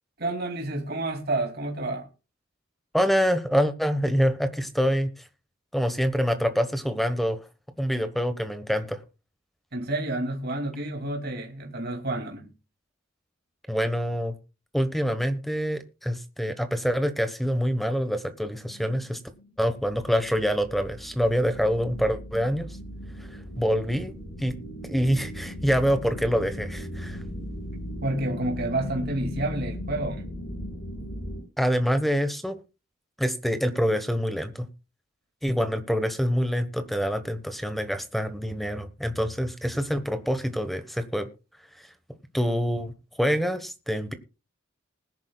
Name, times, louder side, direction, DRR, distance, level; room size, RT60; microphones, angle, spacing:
voice 1, 0.2-2.1 9.7-12.5 28.0-30.3, right 2 dB, 50° right, 2.5 m, -29 dB
voice 2, 2.9-5.1 5.7-7.4 7.8-9.0 13.7-14.3 14.7-19.2 19.6-22.7 23.3-24.1 24.4-24.5 24.8-27.2 31.6-32.6 33.2-34.7 35.4-41.3 42.3-44.1, equal, ahead, 1.2 m, -26 dB
sound 1, 18.6-31.4, equal, 75° left, 4.4 m, -38 dB
20.0 x 10.5 x 2.3 m
head